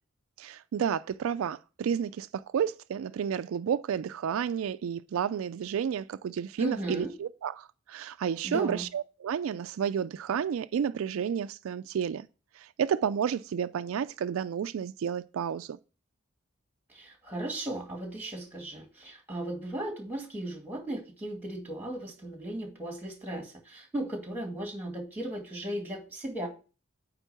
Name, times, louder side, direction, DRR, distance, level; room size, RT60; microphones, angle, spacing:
voice 1, 0.4-12.3 12.6-15.8, right 8 dB, 70° right, 0.3 m, -31 dB
voice 2, 6.6-7.2 8.4-8.9 16.9-26.5, right 1 dB, 10° right, 2.1 m, -36 dB
9.0 x 3.7 x 6.9 m
head